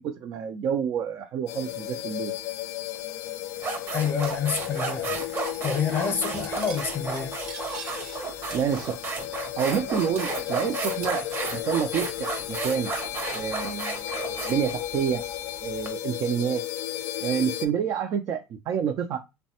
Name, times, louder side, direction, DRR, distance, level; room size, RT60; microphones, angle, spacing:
voice 1, 0.0-2.3 8.5-9.0 9.6-11.2 11.5-12.9 13.3-15.2 15.6-16.6 17.2-19.2, right 8 dB, 55° right, 0.4 m, -28 dB
sound 1, 1.5-17.7, left 14 dB, 80° left, 0.4 m, -34 dB
sound 2, 3.0-3.1 3.6-15.9, right 4 dB, 35° right, 0.8 m, -33 dB
voice 2, 3.9-5.2 5.6-7.4, left 6 dB, 40° left, 0.7 m, -28 dB
Cutlery silverware, 4.2-5.1 5.4-5.6 5.9-8.2 8.5-9.2 9.5-9.6 10.2-12.5 12.7-13.9, right 5 dB, 85° right, 0.7 m, -46 dB
3.1 x 2.1 x 2.7 m
cardioid pair, 115°, 6 cm